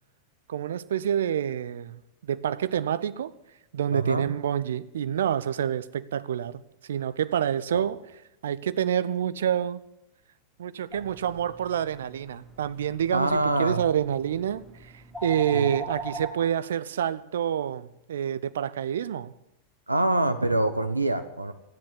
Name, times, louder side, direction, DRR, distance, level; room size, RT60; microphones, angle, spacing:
voice 1, 0.5-3.3 3.7-8.0 8.4-9.8 10.6-19.3, right 9 dB, 60° right, 0.6 m, -28 dB
voice 2, 3.9-4.2 7.7-7.9 13.1-13.8 15.5-15.7 19.9-21.5, right 2 dB, 85° right, 1.0 m, -25 dB
sound 1, 10.9-16.3, right 2 dB, 10° right, 4.4 m, -41 dB
13.5 x 10.5 x 10.0 m
figure-of-eight pair, 90°, 0 cm